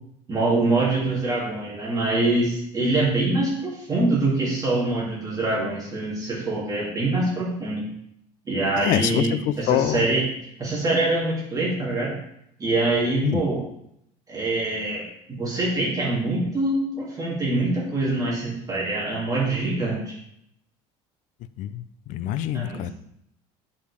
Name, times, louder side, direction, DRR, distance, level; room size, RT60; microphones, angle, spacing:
voice 1, 0.3-7.9 8.5-10.2 10.6-12.1 12.6-13.6 14.3-20.1 22.5-22.9, right 2 dB, 25° right, -5 dB, 2.5 m, -24 dB
voice 2, 8.8-10.1 13.2-13.4 21.6-22.9, left 12 dB, 60° left, 14 dB, 0.5 m, -25 dB
9.6 x 5.1 x 3.4 m, 0.74 s
cardioid pair, 130°, 15 cm